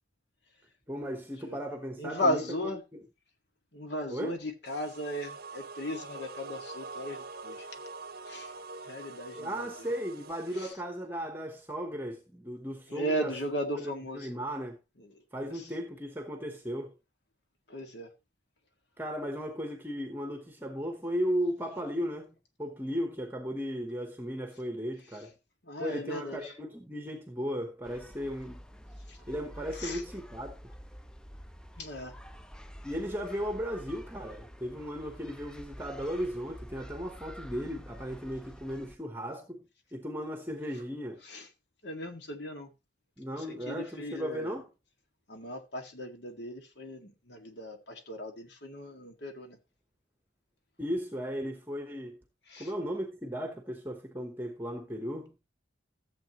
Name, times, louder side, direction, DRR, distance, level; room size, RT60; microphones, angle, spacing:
voice 1, 0.9-3.0 4.1-4.4 9.4-13.4 13.8-14.8 15.3-16.9 19.0-25.3 25.8-28.6 29.3-30.6 32.8-39.6 39.9-41.2 43.2-44.7 50.8-52.2 52.6-55.4, equal, 10° right, 1.0 m, -36 dB
voice 2, 2.0-2.8 3.7-7.7 8.3-8.6 8.8-9.7 10.5-10.7 12.9-14.3 15.0-15.7 17.7-18.1 25.6-26.5 29.1-29.2 29.7-30.0 31.8-32.1 41.2-41.5 41.8-42.7 43.3-44.5 45.3-49.6 52.5-52.7, equal, 60° left, 2.0 m, -36 dB
sound 1, 4.7-10.7, right 3 dB, 55° right, 0.8 m, -45 dB
sound 2, 27.8-39.0, equal, 5° left, 0.4 m, -48 dB
14.5 x 7.7 x 3.0 m
head